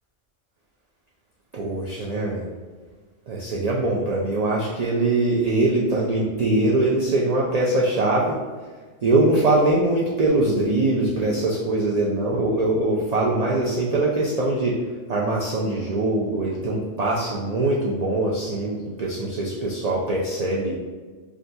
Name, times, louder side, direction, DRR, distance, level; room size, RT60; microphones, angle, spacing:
voice 1, 1.5-2.4 3.3-8.4 9.0-14.7 15.1-20.7, right 2 dB, 85° right, -4 dB, 0.3 m, -22 dB
5.9 x 2.2 x 2.6 m, 1.4 s
omnidirectional pair, 1.3 m